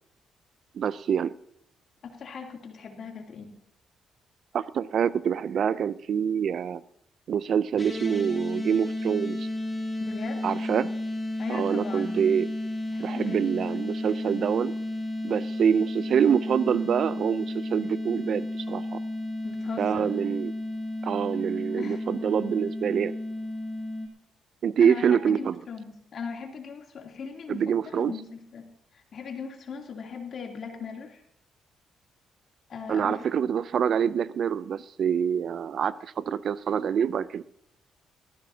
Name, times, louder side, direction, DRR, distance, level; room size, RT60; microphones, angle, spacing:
voice 1, 0.7-1.3 4.5-6.8 7.3-9.5 10.4-10.9 11.5-12.5 13.0-14.7 15.2-19.0 19.8-20.5 21.0-23.2 24.6-25.6 27.5-28.1 32.9-37.4, right 8 dB, 60° right, 17 dB, 0.5 m, -26 dB
voice 2, 2.0-3.5 10.0-10.5 11.4-12.2 12.9-13.5 19.4-20.1 21.7-22.0 24.8-31.2 32.7-33.2, left 5 dB, 55° left, 2 dB, 2.9 m, -39 dB
sound 1, 7.8-24.1, left 1 dB, 15° left, 3.2 m, -33 dB
18.5 x 14.5 x 2.8 m, 0.70 s
cardioid pair, 90°, 0 cm